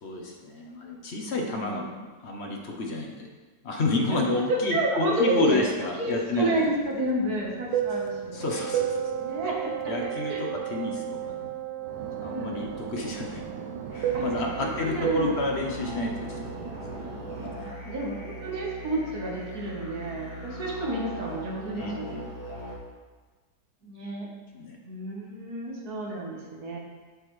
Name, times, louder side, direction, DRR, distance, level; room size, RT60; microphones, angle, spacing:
voice 1, 0.0-3.3 3.6-6.5 8.3-9.1 9.9-11.5 12.2-13.6 13.9-16.4 16.7-16.8 21.8-22.2 24.5-24.8, left 2 dB, 50° left, 1 dB, 1.0 m, -30 dB
voice 2, 1.3-1.8 4.5-5.6 6.0-8.4 9.2-9.7 10.0-10.9 11.2-11.4 12.2-12.7 14.1-14.2 14.8-15.3 17.5-22.2 23.8-24.3 24.8-26.8, right 1 dB, 75° right, -2 dB, 1.8 m, -30 dB
Fixed-wing aircraft airplane, 6.1-11.5 11.8-17.7, right 8 dB, 90° right, 1.2 m, -34 dB
Wind instrument woodwind instrument, 8.4-15.0, right 12 dB, 55° right, 1.2 m, -37 dB
sound 1, 13.9-22.8, equal, 80° left, 2.6 m, -40 dB
7.7 x 6.6 x 3.2 m, 1.3 s
omnidirectional pair, 1.6 m